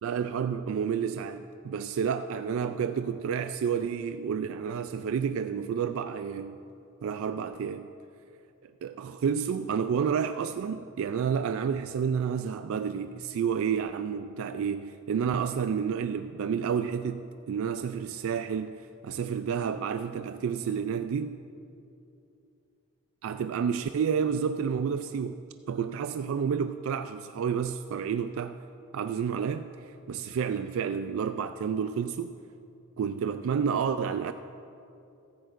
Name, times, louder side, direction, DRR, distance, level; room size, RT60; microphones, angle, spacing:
voice 1, 0.0-6.6 7.0-7.9 8.6-21.4 23.2-25.4 25.7-28.6 28.9-32.4 33.0-34.3, right 7 dB, 70° right, 10 dB, 0.3 m, -30 dB
15.5 x 14.5 x 2.5 m, 2.7 s
head